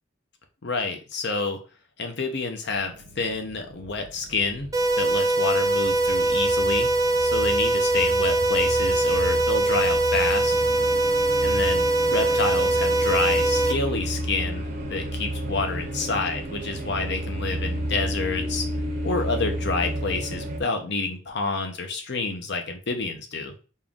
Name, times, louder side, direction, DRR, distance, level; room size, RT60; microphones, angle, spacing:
voice 1, 0.6-1.6 2.0-4.7 5.0-6.9 7.2-10.5 11.4-18.7 19.0-23.5, left 3 dB, 65° left, 4 dB, 0.8 m, -28 dB
sound 1, 2.9-20.6, equal, 45° right, 0.8 m, -32 dB
sound 2, 4.7-13.7, right 2 dB, 20° right, 0.4 m, -22 dB
4.4 x 2.4 x 3.6 m, 0.35 s
head